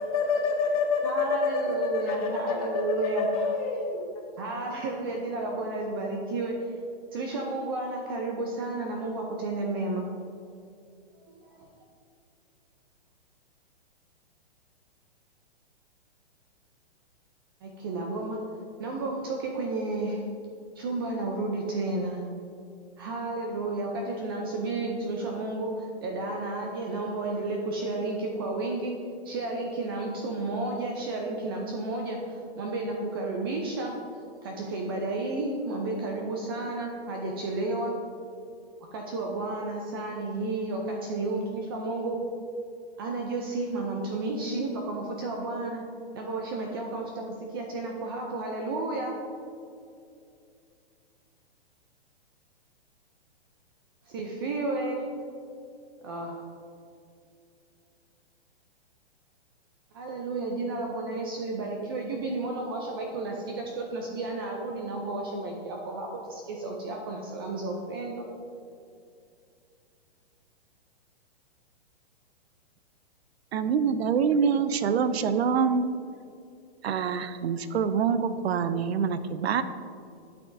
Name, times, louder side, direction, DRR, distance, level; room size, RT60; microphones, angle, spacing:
voice 1, 0.0-4.0, left 4 dB, 35° left, 1 dB, 1.2 m, -28 dB
voice 2, 1.0-3.3 4.4-6.5 7.1-10.1 11.3-11.7 17.6-18.4 18.8-20.2 20.8-22.2 23.0-28.9 29.2-34.0 34.4-37.9 38.9-42.2 43.0-45.8 46.1-49.1 54.1-55.0 56.0-56.4 59.9-68.2, right 2 dB, 25° right, 0 dB, 0.4 m, -32 dB
voice 3, 73.5-75.9 76.8-79.6, right 6 dB, 75° right, 12 dB, 0.6 m, -25 dB
11.0 x 6.0 x 2.6 m, 2.5 s
hypercardioid pair, 155°, 32 cm